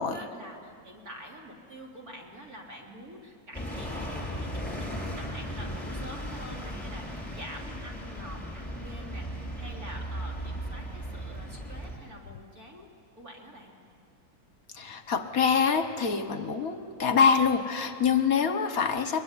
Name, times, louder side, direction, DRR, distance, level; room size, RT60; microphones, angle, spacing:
voice 1, 0.0-12.9 13.2-13.7, equal, 45° right, -1 dB, 3.7 m, -46 dB
sound 1, 3.5-12.0, equal, 5° left, 4.1 m, -36 dB
voice 2, 14.7-19.2, left 6 dB, 50° left, 8 dB, 1.4 m, -25 dB
23.5 x 22.0 x 9.8 m, 2.3 s
omnidirectional pair, 2.1 m